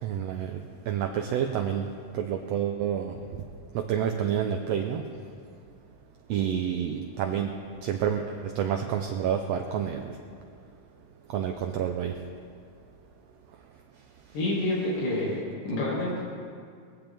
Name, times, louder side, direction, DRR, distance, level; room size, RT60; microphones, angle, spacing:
voice 1, 0.0-1.9 2.1-3.2 3.7-5.0 6.3-7.5 7.8-10.2 11.3-12.2, right 9 dB, 75° right, 4 dB, 1.5 m, -29 dB
voice 2, 14.3-15.3 15.6-16.2, left 1 dB, 85° left, -7 dB, 3.8 m, -28 dB
19.5 x 15.0 x 3.5 m, 2.2 s
omnidirectional pair, 3.6 m